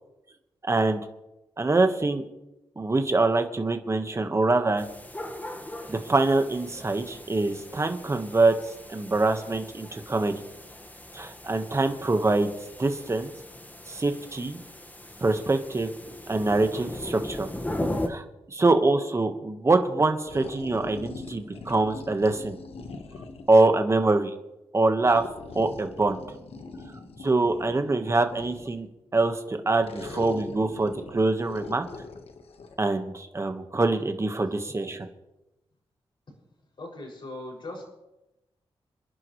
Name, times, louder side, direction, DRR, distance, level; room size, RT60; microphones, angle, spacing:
voice 1, 0.6-1.0 1.6-2.2 2.8-4.9 5.9-8.5 8.9-10.3 11.1-12.5 12.8-13.3 13.9-14.6 15.2-15.9 16.3-17.5 18.1-22.6 23.5-24.3 24.7-25.2 25.5-26.2 27.2-28.9 29.1-31.8 32.8-35.1, right 2 dB, 30° right, 6 dB, 1.5 m, -24 dB
sound 1, 4.8-18.1, left 1 dB, 15° left, 1.7 m, -38 dB
sound 2, 20.3-23.6 25.0-28.9 29.8-32.8, left 3 dB, 75° left, 1.5 m, -42 dB
voice 2, 36.8-37.8, left 2 dB, 55° left, -2 dB, 6.5 m, -39 dB
28.0 x 10.5 x 3.3 m, 0.95 s
wide cardioid pair, 100°, 10 cm